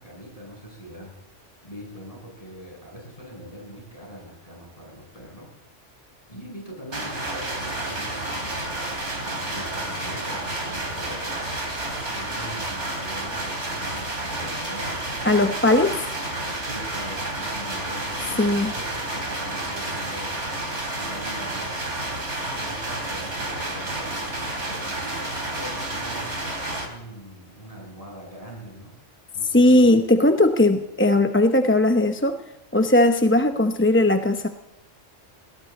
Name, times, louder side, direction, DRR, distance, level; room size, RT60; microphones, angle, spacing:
voice 1, 0.0-5.5 5.8-5.9 6.3-8.8 9.2-15.0 16.7-20.4 20.9-22.1 22.5-26.4 26.8-28.9 29.3-29.9, equal, 30° left, -2 dB, 8.1 m, -42 dB
sound 1, 6.9-26.9, right 1 dB, 70° right, 3.8 m, -30 dB
voice 2, 15.2-16.0 18.4-18.7 29.5-32.4 32.7-34.5, left 1 dB, 10° left, 6 dB, 0.7 m, -18 dB
19.5 x 17.0 x 4.2 m, 0.92 s
omnidirectional pair, 1.2 m